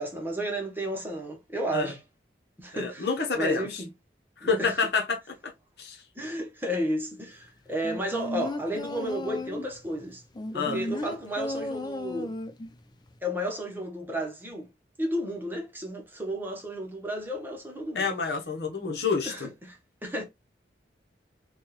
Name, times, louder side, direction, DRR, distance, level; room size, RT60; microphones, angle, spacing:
voice 1, 0.0-2.0 2.6-3.1 3.3-3.9 4.4-4.8 6.1-10.2 10.5-12.3 13.2-14.7 15.0-18.1 19.2-20.2, right 1 dB, 10° right, 0.9 m, -32 dB
voice 2, 2.7-3.7 4.4-5.2 5.8-6.0 10.5-10.8 17.9-19.5, left 4 dB, 65° left, 0.9 m, -28 dB
sound 1, 7.8-9.8 10.3-12.8 13.1-13.2, left 1 dB, 25° left, 0.4 m, -34 dB
4.2 x 2.3 x 3.1 m
head